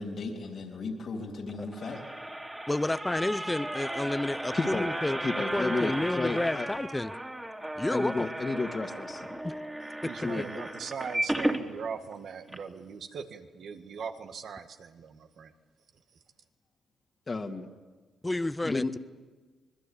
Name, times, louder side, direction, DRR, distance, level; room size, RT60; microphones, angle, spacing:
voice 1, 0.0-2.0, left 3 dB, 65° left, 4 dB, 3.4 m, -37 dB
sound 1, 1.5-11.6 12.1-12.2 12.5-12.6, right 1 dB, 15° right, 2.7 m, -35 dB
voice 2, 2.7-5.2 5.5-7.1 7.7-8.3 9.4-9.6 10.0-10.1 18.2-19.0, left 2 dB, 15° left, 13 dB, 0.8 m, -30 dB
voice 3, 4.5-4.9 5.2-6.7 7.9-9.4 10.2-10.6 17.3-17.7 18.6-18.9, left 3 dB, 35° left, 1 dB, 2.0 m, -32 dB
voice 4, 10.0-15.5, right 6 dB, 65° right, 7 dB, 1.8 m, -40 dB
25.5 x 20.5 x 8.6 m, 1.4 s
supercardioid pair, 65°, 0 cm